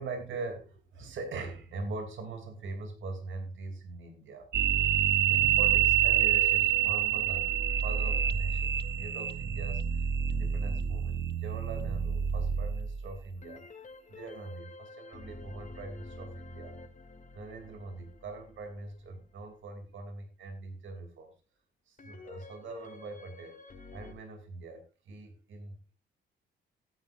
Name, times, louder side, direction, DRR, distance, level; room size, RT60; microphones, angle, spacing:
voice 1, 0.0-4.5 5.0-10.0 10.3-13.6 14.1-16.7 17.3-21.3 21.9-23.6 23.9-25.9, right 3 dB, 75° right, 5 dB, 2.8 m, -42 dB
sound 1, 4.5-13.1, right 10 dB, 60° right, 0.8 m, -27 dB
sound 2, 6.1-10.7 13.4-19.4 22.0-24.1, left 2 dB, 40° left, 2.5 m, -49 dB
16.5 x 9.7 x 2.5 m, 0.31 s
cardioid pair, 95°, 20 cm